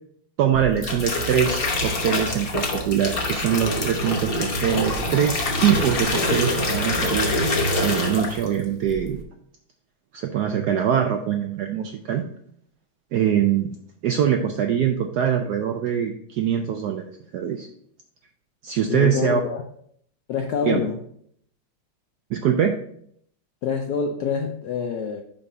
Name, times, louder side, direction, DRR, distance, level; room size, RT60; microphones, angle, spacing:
voice 1, 0.4-7.3 7.8-9.2 10.1-12.2 13.1-13.8 14.0-17.7 18.6-19.4 20.6-20.8 22.3-22.8, right 9 dB, 80° right, 4 dB, 0.9 m, -23 dB
sound 1, 0.5-8.5 8.8-9.2, left 1 dB, 45° left, 0.8 m, -25 dB
voice 2, 18.9-19.6 20.3-21.0 23.6-25.2, left 6 dB, 75° left, 4 dB, 0.9 m, -26 dB
5.7 x 5.3 x 4.0 m, 0.66 s
omnidirectional pair, 2.3 m